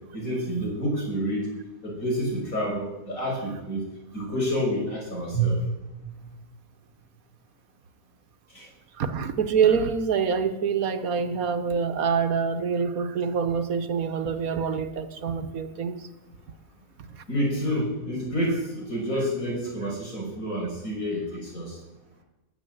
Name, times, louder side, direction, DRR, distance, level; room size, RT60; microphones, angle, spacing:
voice 1, 0.1-1.5 1.8-3.8 4.1-5.6 8.5-8.7 17.3-21.8, right 1 dB, 65° left, 6.3 m, -28 dB
voice 2, 8.9-16.1 17.0-17.2, right 6 dB, 70° right, 1.4 m, -26 dB
20.5 x 7.5 x 7.9 m
omnidirectional pair, 1.6 m